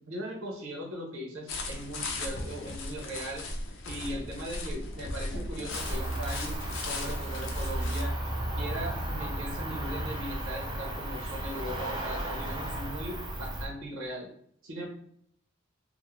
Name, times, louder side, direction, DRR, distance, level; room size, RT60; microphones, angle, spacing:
voice 1, 0.1-3.4 3.9-6.6 6.8-8.1 8.6-14.3 14.6-14.9, right 1 dB, 90° right, -1 dB, 0.6 m, -39 dB
sound 1, 1.5-8.0, left 2 dB, 65° left, 0.5 m, -37 dB
Cricket, 5.7-13.7, right 1 dB, 20° right, 0.4 m, -34 dB
2.3 x 2.1 x 2.9 m, 0.67 s
head